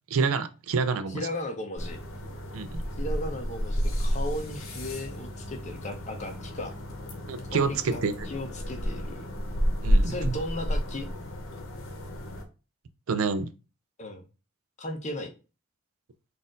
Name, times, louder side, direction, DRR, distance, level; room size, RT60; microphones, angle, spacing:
voice 1, 0.1-1.2 2.5-2.8 7.3-8.3 9.8-10.4 13.1-13.5, right 5 dB, 85° right, 0.4 m, -28 dB
voice 2, 1.1-2.0 3.0-6.7 7.5-9.3 10.0-11.1 14.0-14.2 14.8-15.3, left 1 dB, 35° left, 0.6 m, -36 dB
sound 1, 1.8-12.4, equal, 80° left, 0.8 m, -31 dB
4.1 x 2.5 x 3.7 m
head